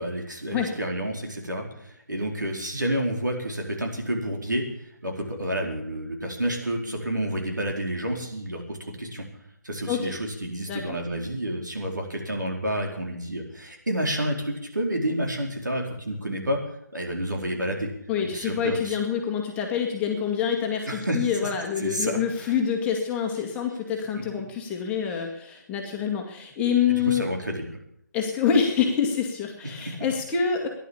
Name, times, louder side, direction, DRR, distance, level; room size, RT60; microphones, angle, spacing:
voice 1, 0.0-4.6 5.0-9.2 9.6-16.6 16.9-17.9 18.3-19.0 20.9-21.3 21.8-22.5 26.9-27.8 29.8-29.9, right 1 dB, 85° right, 1 dB, 4.5 m, -29 dB
voice 2, 18.1-27.2 28.1-30.7, left 7 dB, 10° left, 1 dB, 2.0 m, -26 dB
14.5 x 11.0 x 7.2 m, 0.72 s
figure-of-eight pair, 145°, 10 cm